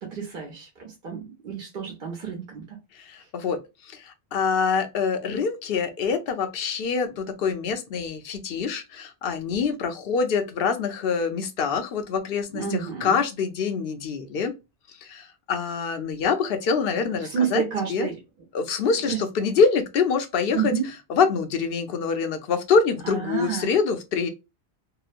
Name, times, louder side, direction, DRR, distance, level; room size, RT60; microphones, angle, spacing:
voice 1, 0.0-2.6 12.5-13.2 17.1-18.2 19.1-19.2 20.5-20.9 23.0-23.7, right 7 dB, 60° right, 0.9 m, -29 dB
voice 2, 2.9-14.5 14.9-17.6 17.9-18.1 18.5-20.7 21.1-24.3, left 5 dB, 65° left, 0.8 m, -25 dB
2.9 x 2.0 x 2.4 m
omnidirectional pair, 1.1 m